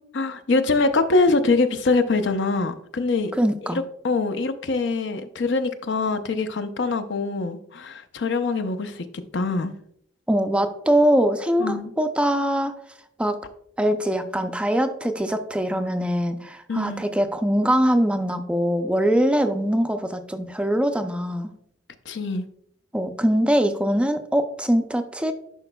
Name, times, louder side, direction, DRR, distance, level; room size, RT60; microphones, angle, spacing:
voice 1, 0.1-3.3 4.0-9.0 9.3-9.7 11.6-11.9 16.7-17.0 22.1-22.5, left 3 dB, 70° left, 8 dB, 0.6 m, -23 dB
voice 2, 3.4-3.8 10.3-12.8 13.2-13.4 13.8-21.5 22.9-25.3, equal, 5° right, 7 dB, 0.4 m, -22 dB
11.0 x 4.9 x 2.2 m, 0.70 s
head